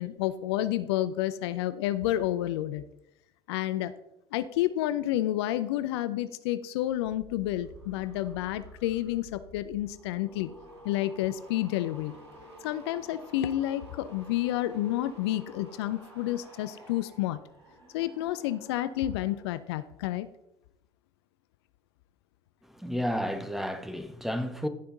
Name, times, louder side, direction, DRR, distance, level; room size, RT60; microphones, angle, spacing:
voice 1, 0.0-2.8 3.5-3.9 4.3-10.5 10.8-12.1 12.6-17.4 17.9-20.3, left 14 dB, 70° left, 0.6 m, -30 dB
sound 1, 6.8-19.5 19.8-20.2, right 1 dB, 85° right, 2.7 m, -51 dB
voice 2, 22.7-24.7, equal, ahead, 1.3 m, -32 dB
16.0 x 5.7 x 3.9 m
hypercardioid pair, 65°, 14 cm